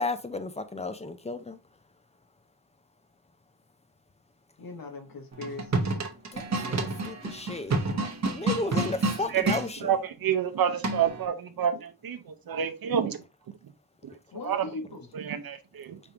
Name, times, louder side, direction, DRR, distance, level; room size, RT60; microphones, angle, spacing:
voice 1, 0.0-1.6 6.3-6.8 7.0-7.7 8.3-9.8, left 3 dB, 20° left, 0.5 m, -33 dB
voice 2, 4.6-6.0 9.2-9.4 14.3-15.1, left 3 dB, 80° left, 1.4 m, -40 dB
sound 1, 5.3-9.7 10.8-11.3, right 2 dB, 50° right, 1.1 m, -29 dB
voice 3, 9.1-13.2 13.6-13.7 14.0-14.2 14.4-14.7 15.1-16.0, right 8 dB, 85° right, 0.7 m, -29 dB
5.2 x 3.6 x 2.9 m
wide cardioid pair, 165°, 34 cm